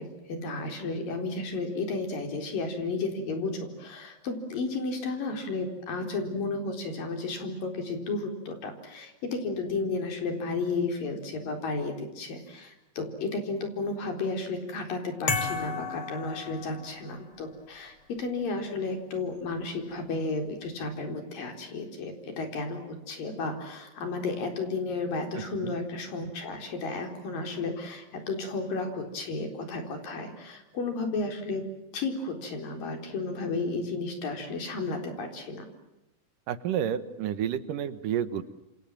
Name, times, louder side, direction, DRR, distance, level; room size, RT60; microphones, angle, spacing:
voice 1, 0.0-31.6 31.9-35.7, left 3 dB, 70° left, 5 dB, 5.7 m, -33 dB
sound 1, 15.3-17.2, left 4 dB, 35° left, 3.1 m, -32 dB
voice 2, 25.3-25.7 36.5-38.4, right 9 dB, 70° right, 13 dB, 2.8 m, -30 dB
28.0 x 27.0 x 7.5 m, 0.94 s
omnidirectional pair, 4.1 m